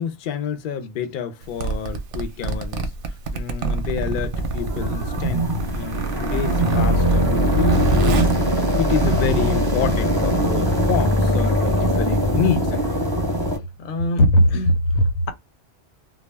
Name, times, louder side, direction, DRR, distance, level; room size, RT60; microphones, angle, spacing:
voice 1, 0.0-2.9 3.3-12.8, left 7 dB, 60° left, 0.6 m, -28 dB
Zipper (clothing), 1.4-9.4, right 3 dB, 60° right, 0.7 m, -27 dB
sound 1, 4.3-13.6, equal, 25° right, 0.6 m, -21 dB
voice 2, 13.8-15.3, equal, 90° left, 0.9 m, -18 dB
2.3 x 2.0 x 3.2 m
omnidirectional pair, 1.2 m